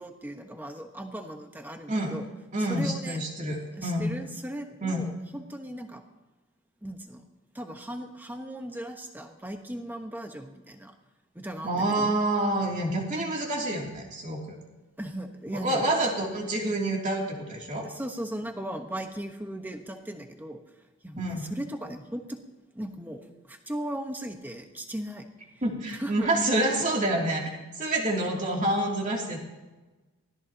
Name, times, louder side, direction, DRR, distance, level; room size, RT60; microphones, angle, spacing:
voice 1, 0.0-2.3 2.6-3.2 3.8-6.0 6.8-7.2 7.5-10.9 11.3-12.1 15.0-15.8 17.8-20.6 21.0-22.4 22.7-25.3 25.9-26.3, right 1 dB, 10° right, 4 dB, 1.2 m, -37 dB
voice 2, 2.5-4.1 4.8-5.0 11.6-14.5 15.5-17.9 21.2-21.4 25.6-29.4, right 1 dB, 35° right, -1 dB, 2.9 m, -28 dB
23.5 x 17.0 x 3.0 m, 1.2 s
head